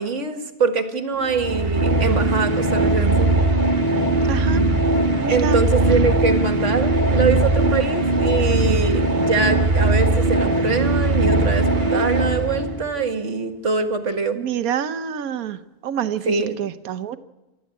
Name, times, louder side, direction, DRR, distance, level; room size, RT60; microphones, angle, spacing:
voice 1, 0.0-3.3 5.3-14.4 16.3-16.6, right 4 dB, 50° right, 7 dB, 1.8 m, -23 dB
sound 1, 1.2-12.9, right 2 dB, 30° right, 1.6 m, -19 dB
voice 2, 4.2-4.6 5.2-5.6 14.3-17.2, right 9 dB, 65° right, 12 dB, 1.3 m, -27 dB
27.5 x 13.5 x 8.3 m, 1.1 s
omnidirectional pair, 1.7 m